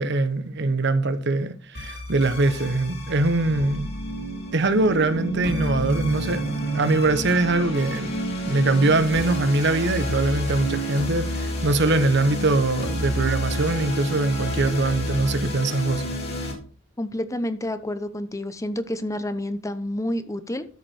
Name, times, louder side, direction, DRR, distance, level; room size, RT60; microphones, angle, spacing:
voice 1, 0.0-3.9 4.5-8.1 8.5-16.0, right 2 dB, 60° right, 1.0 m, -22 dB
sound 1, 1.7-16.5, equal, 55° left, 3.5 m, -29 dB
voice 2, 17.0-20.7, left 1 dB, 15° left, 0.8 m, -29 dB
13.0 x 5.0 x 4.4 m
head